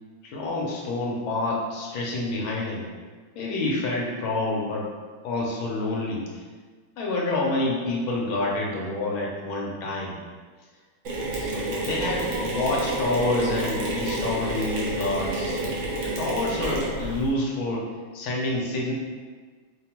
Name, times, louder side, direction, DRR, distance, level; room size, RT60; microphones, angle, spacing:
voice 1, 0.2-2.8 3.4-4.9 5.2-6.4 7.0-10.1 11.3-15.8 16.0-17.8 18.1-18.9, left 2 dB, 75° left, -3 dB, 1.5 m, -28 dB
Mechanisms, 11.0-17.3, right 2 dB, 65° right, 0.8 m, -29 dB
5.3 x 2.2 x 2.9 m, 1.5 s
omnidirectional pair, 2.3 m